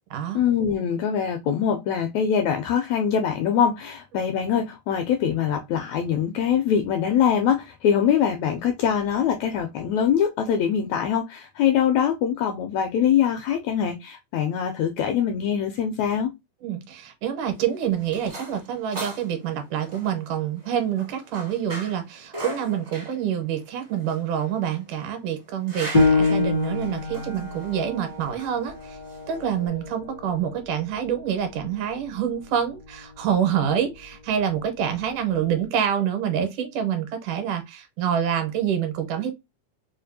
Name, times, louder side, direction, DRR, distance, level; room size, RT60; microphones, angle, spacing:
voice 1, 0.3-16.3, left 8 dB, 85° left, 1.6 m, -23 dB
voice 2, 16.6-29.0 29.3-39.3, right 9 dB, 80° right, 2.4 m, -27 dB
sound 1, 17.4-29.7, right 1 dB, 50° right, 0.7 m, -41 dB
Piano, 25.9-31.1 31.6-31.7 32.3-32.8, left 3 dB, 35° left, 0.4 m, -26 dB
5.0 x 2.3 x 2.6 m
omnidirectional pair, 3.6 m